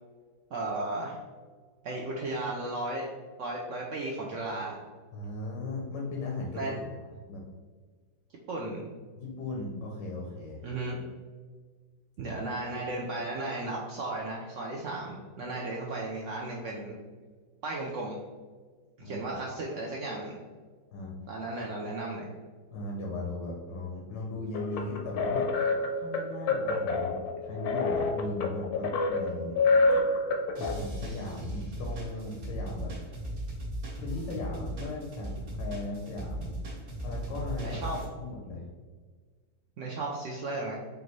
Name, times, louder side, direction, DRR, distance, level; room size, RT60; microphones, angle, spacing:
voice 1, 0.5-1.2 1.8-3.0 3.4-4.8 6.5-6.8 8.5-8.8 10.6-11.0 12.2-17.0 17.6-18.2 19.0-20.4 21.3-22.3 37.6-38.0 39.8-40.7, right 2 dB, 80° right, -2 dB, 0.6 m, -35 dB
voice 2, 5.1-7.4 9.2-10.6 19.0-19.3 20.9-21.1 22.7-25.5 26.0-27.1 27.4-29.6 30.7-32.9 34.0-36.5 37.0-38.7, left 2 dB, 85° left, -2 dB, 1.4 m, -37 dB
sound 1, 24.5-30.7, left 3 dB, 70° left, 0.9 m, -28 dB
sound 2, 30.6-38.1, right 1 dB, 55° right, 1.6 m, -37 dB
5.1 x 2.5 x 3.0 m, 1.5 s
omnidirectional pair, 1.9 m